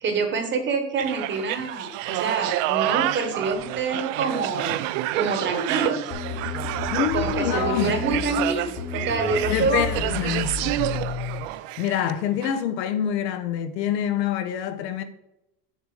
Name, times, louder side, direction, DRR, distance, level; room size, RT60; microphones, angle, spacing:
voice 1, 0.0-4.8 5.1-6.0 7.1-9.9, right 4 dB, 25° right, 1.0 m, -26 dB
sound 1, 1.0-12.1 12.4-12.6, right 15 dB, 55° right, 0.5 m, -29 dB
sound 2, 6.1-11.4, left 5 dB, 35° left, 1.4 m, -32 dB
voice 2, 6.9-8.0 9.5-10.5 11.8-15.0, left 10 dB, 85° left, 1.2 m, -26 dB
7.2 x 7.0 x 4.8 m
supercardioid pair, 160°, 49 cm